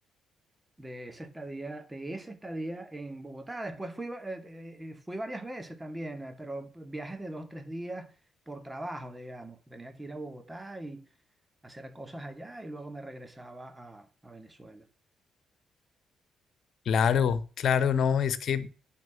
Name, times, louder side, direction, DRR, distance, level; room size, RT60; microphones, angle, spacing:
voice 1, 0.8-8.1 8.5-11.1 11.6-14.9, right 1 dB, 15° right, 2.5 m, -40 dB
voice 2, 16.9-18.7, left 7 dB, 60° left, 1.3 m, -25 dB
11.0 x 7.5 x 7.2 m
hypercardioid pair, 45°, 0 cm